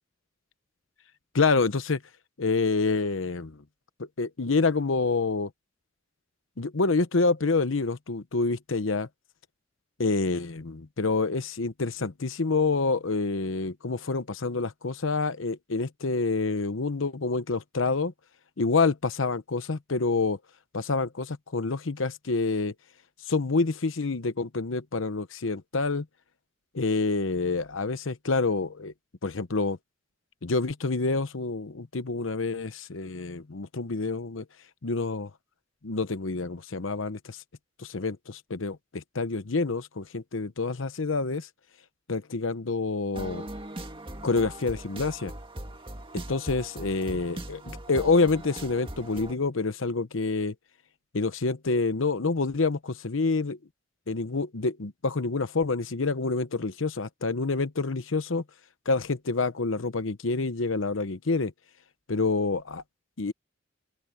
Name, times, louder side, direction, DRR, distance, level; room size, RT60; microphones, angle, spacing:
voice 1, 1.3-2.0 2.4-3.6 4.0-5.5 6.6-9.1 10.0-18.1 18.6-20.4 20.7-22.7 23.3-26.1 26.7-28.9 29.2-29.8 30.4-34.4 34.8-35.3 35.8-37.4 37.8-41.5 42.1-43.5 44.2-45.3 46.1-50.5 51.1-53.6 54.1-58.4 58.9-61.5 62.1-62.8 63.2-63.3, left 3 dB, 85° left, 0.9 m, -27 dB
sound 1, 43.1-49.3, right 1 dB, 25° right, 1.9 m, -40 dB
open air
head